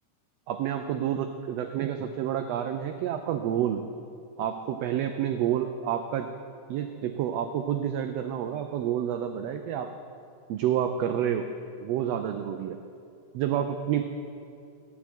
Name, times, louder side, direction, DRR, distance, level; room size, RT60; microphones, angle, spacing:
voice 1, 0.5-3.8 4.4-6.3 6.7-9.9 10.5-11.5 11.8-12.8 13.3-14.0, right 10 dB, 85° right, 7 dB, 1.4 m, -29 dB
14.0 x 9.8 x 4.4 m, 2.5 s
omnidirectional pair, 3.5 m